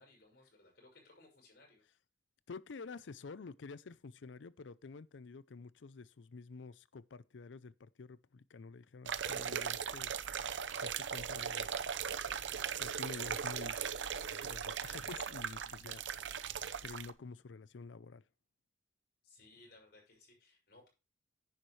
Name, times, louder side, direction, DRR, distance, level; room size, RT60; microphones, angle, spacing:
voice 1, 0.0-1.8 19.2-20.9, left 2 dB, 60° left, 6.1 m, -62 dB
voice 2, 2.5-10.1 10.8-11.7 12.8-13.9 14.4-16.4 16.8-18.2, left 4 dB, 80° left, 0.5 m, -49 dB
sound 1, 9.1-17.1, right 7 dB, 75° right, 0.7 m, -39 dB
10.5 x 10.0 x 3.2 m
head